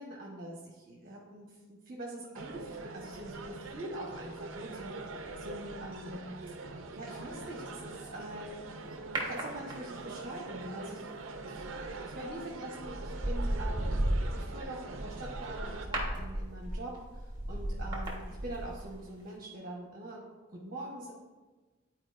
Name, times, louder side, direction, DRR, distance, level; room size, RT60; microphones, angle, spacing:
voice 1, 0.0-1.6 1.9-6.3 6.9-8.6 9.2-11.1 11.4-14.0 14.3-20.2 20.5-21.1, right 1 dB, 40° right, -3 dB, 1.1 m, -44 dB
sound 1, 2.4-15.9, right 3 dB, 65° right, 0.6 m, -43 dB
sound 2, 9.2-10.2 12.1-12.3 12.8-19.0 19.3-19.4, right 1 dB, 20° right, 1.3 m, -35 dB
11.5 x 4.5 x 2.5 m, 1.2 s
head